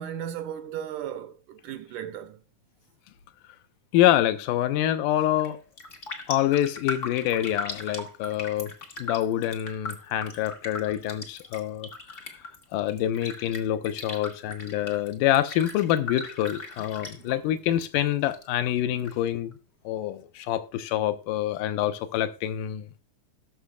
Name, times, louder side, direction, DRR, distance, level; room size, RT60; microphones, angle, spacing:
voice 1, 0.0-2.4 17.2-17.4, right 9 dB, 80° right, 2.1 m, -36 dB
voice 2, 3.9-5.6 6.3-8.7 9.0-12.4 12.7-19.6 19.9-22.9, left 12 dB, 90° left, 2.3 m, -26 dB
Raindrop, 5.4-5.5 5.8-17.8 18.1-19.1 19.5-19.6, left 3 dB, 55° left, 0.8 m, -38 dB
18.5 x 6.5 x 2.3 m
omnidirectional pair, 3.7 m